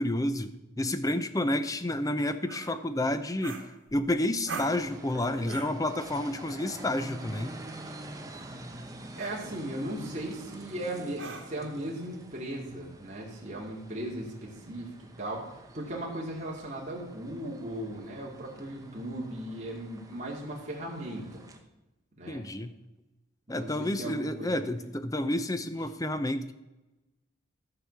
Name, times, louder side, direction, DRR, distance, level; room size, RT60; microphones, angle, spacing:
voice 1, 0.0-3.6 3.9-7.6 22.3-22.7 23.5-26.5, left 1 dB, 15° left, 11 dB, 0.6 m, -30 dB
sound 1, 2.5-2.7 3.4-4.1 4.5-4.8 5.4-5.8 7.3-7.5 8.3-8.6 9.2-9.4 11.2-11.7, right 4 dB, 70° right, 1.9 m, -41 dB
sound 2, 4.4-21.6, right 1 dB, 15° right, 0.9 m, -47 dB
voice 2, 9.2-14.9 15.2-21.4 22.2-22.4 23.5-24.7, right 1 dB, 35° right, -3 dB, 2.2 m, -37 dB
13.5 x 4.9 x 7.1 m, 1.0 s
head